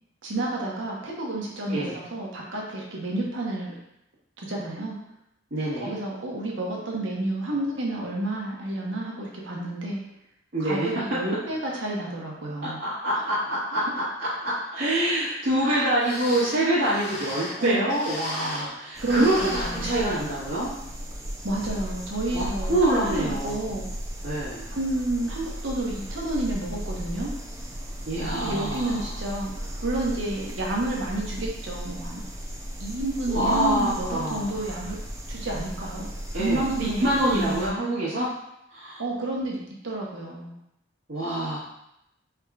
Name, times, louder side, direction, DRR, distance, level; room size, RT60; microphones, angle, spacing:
voice 1, 0.2-3.7 4.4-5.0 5.8-10.0 10.6-12.8 15.6-15.9 17.6-17.9 19.0-19.9 21.4-22.7 23.0-23.8 24.7-27.3 28.4-32.2 32.8-35.0 35.3-36.1 36.4-37.1 37.3-37.7 39.0-40.5, right 1 dB, 85° right, -2 dB, 1.0 m, -30 dB
voice 2, 5.5-6.0 10.5-10.9 12.6-20.7 22.3-23.8 24.2-24.7 28.1-29.1 33.3-34.6 36.3-38.3 38.7-39.0 41.1-41.6, right 1 dB, 65° right, -13 dB, 1.4 m, -26 dB
sound 1, 15.7-15.8 15.9-18.8 19.0-20.4 20.8-20.9 21.6-21.8 22.2-22.3, left 1 dB, 65° left, 1.4 m, -36 dB
sound 2, 18.9-37.7, equal, 15° right, 0.6 m, -36 dB
4.8 x 3.5 x 2.4 m, 0.82 s
head